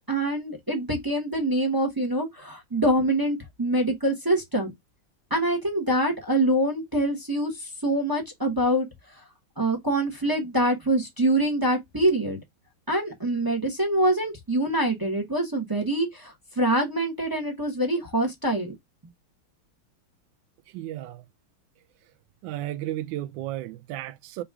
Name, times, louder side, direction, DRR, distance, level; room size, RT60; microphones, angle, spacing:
voice 1, 0.1-4.7 5.3-8.9 9.1-9.2 9.6-12.4 12.9-18.7, right 1 dB, 25° right, 0.5 m, -25 dB
voice 2, 20.7-21.2 22.4-24.4, right 14 dB, 75° right, 1.2 m, -33 dB
4.0 x 2.4 x 4.6 m
omnidirectional pair, 2.2 m